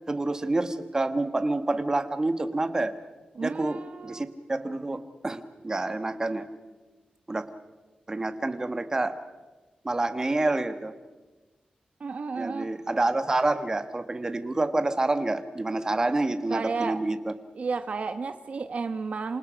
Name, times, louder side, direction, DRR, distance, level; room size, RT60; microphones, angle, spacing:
voice 1, 0.1-2.9 3.4-6.5 7.3-7.5 8.1-9.1 9.8-10.9 12.3-17.3, right 2 dB, 25° right, 9 dB, 1.4 m, -28 dB
voice 2, 3.3-4.3 12.0-12.7 16.5-17.0 17.6-19.4, right 4 dB, 55° right, 9 dB, 1.0 m, -32 dB
27.5 x 27.5 x 5.2 m, 1.2 s
wide cardioid pair, 135°, 3 cm